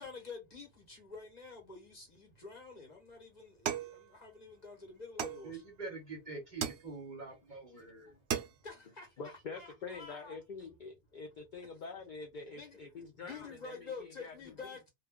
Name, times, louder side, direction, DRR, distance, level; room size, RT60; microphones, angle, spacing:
voice 1, 0.0-5.6 8.1-8.2 8.6-10.4 12.5-12.8 13.2-14.9, left 4 dB, 40° left, 1.1 m, -49 dB
sound 1, 3.7-4.6 5.2-5.9 6.6-7.3 7.8-7.9 8.1-8.9, right 9 dB, 75° right, 0.8 m, -39 dB
voice 2, 5.4-8.1, right 3 dB, 45° right, 0.8 m, -45 dB
voice 3, 7.5-8.2 9.2-14.5, left 4 dB, 55° left, 0.6 m, -46 dB
2.2 x 2.2 x 3.4 m
omnidirectional pair, 1.2 m